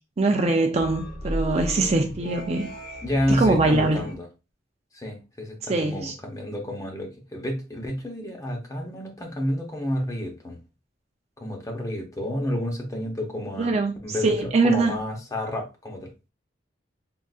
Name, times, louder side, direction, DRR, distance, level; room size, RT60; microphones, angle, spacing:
voice 1, 0.2-2.7 3.3-4.0 5.7-6.1 13.6-13.9 14.2-15.0, right 3 dB, 35° right, 0.4 m, -22 dB
sound 1, 0.8-4.1, equal, 50° left, 1.0 m, -35 dB
voice 2, 3.0-4.3 4.9-10.6 11.4-13.8 14.0-16.1, left 1 dB, 20° left, 0.7 m, -30 dB
3.7 x 2.5 x 2.3 m
head